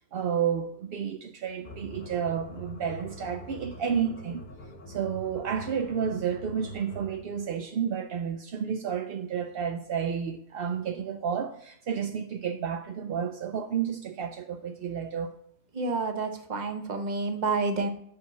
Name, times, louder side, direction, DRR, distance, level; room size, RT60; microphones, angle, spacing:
voice 1, 0.0-4.5 4.9-15.3, right 7 dB, 70° right, 0.5 m, -31 dB
sound 1, 1.6-7.3, right 1 dB, 40° left, 1.1 m, -44 dB
voice 2, 15.7-17.9, right 3 dB, 35° right, 0.8 m, -29 dB
7.6 x 5.7 x 4.2 m
omnidirectional pair, 1.5 m